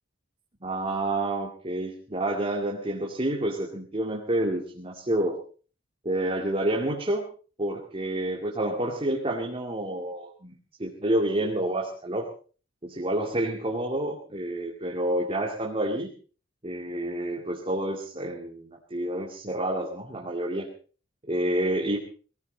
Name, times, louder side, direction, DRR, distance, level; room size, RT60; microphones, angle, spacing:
voice 1, 0.6-5.4 6.0-7.2 7.6-10.5 10.8-12.3 12.8-16.1 16.6-20.7 21.3-22.0, right 1 dB, 30° right, 0 dB, 2.3 m, -29 dB
19.5 x 17.5 x 4.0 m, 0.40 s
head